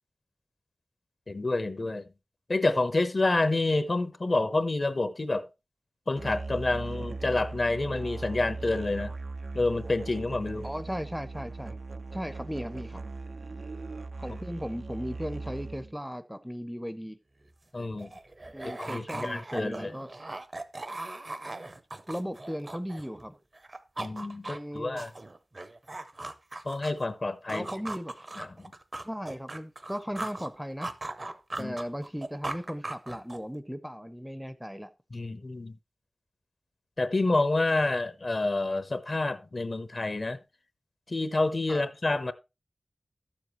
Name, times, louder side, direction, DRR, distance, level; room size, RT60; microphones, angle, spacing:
voice 1, 1.3-2.0 2.5-5.5 6.1-9.1 9.5-10.7 14.3-14.4 17.7-18.1 18.6-19.9 24.0-25.1 26.6-27.7 28.4-28.7 31.6-31.8 35.1-35.8 37.0-40.4 41.1-42.3, left 2 dB, 50° left, 0.8 m, -28 dB
Musical instrument, 6.2-16.0, right 3 dB, 85° right, 0.5 m, -39 dB
voice 2, 10.6-11.8 12.1-13.0 14.2-17.2 18.5-20.1 22.1-23.3 24.5-25.0 27.5-28.1 29.0-30.9 31.6-34.9 41.7-41.8, equal, 5° right, 0.6 m, -37 dB
sound 1, 17.4-17.5 17.7-23.3 23.6-27.1 27.5-30.5 30.8-33.6, right 2 dB, 40° right, 0.7 m, -39 dB
12.5 x 7.3 x 3.0 m
wide cardioid pair, 75°, 0 cm